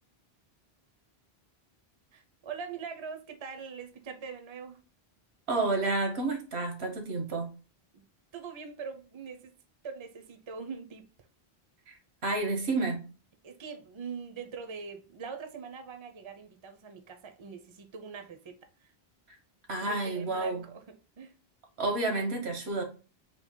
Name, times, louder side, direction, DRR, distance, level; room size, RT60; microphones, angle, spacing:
voice 1, 2.1-4.8 7.9-8.0 8.3-9.5 9.8-11.1 13.4-18.9 19.8-20.8 21.2-21.3, right 5 dB, 35° right, 0.6 m, -42 dB
voice 2, 5.5-7.5 11.9-13.0 19.3-19.4 19.7-20.6 21.8-22.8, right 3 dB, 90° right, 1.3 m, -30 dB
3.8 x 2.8 x 3.6 m
omnidirectional pair, 1.0 m